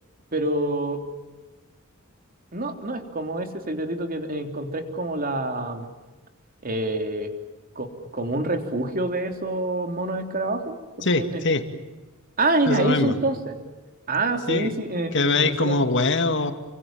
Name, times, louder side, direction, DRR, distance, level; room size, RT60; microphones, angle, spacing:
voice 1, 0.3-1.0 2.5-5.9 6.6-7.3 7.8-11.4 12.4-13.6 14.1-15.8, right 2 dB, 45° right, 5 dB, 3.4 m, -27 dB
voice 2, 11.0-11.6 12.7-13.2 14.5-14.7 15.1-16.5, left 3 dB, 60° left, 8 dB, 2.4 m, -22 dB
29.5 x 25.0 x 7.6 m, 1.2 s
head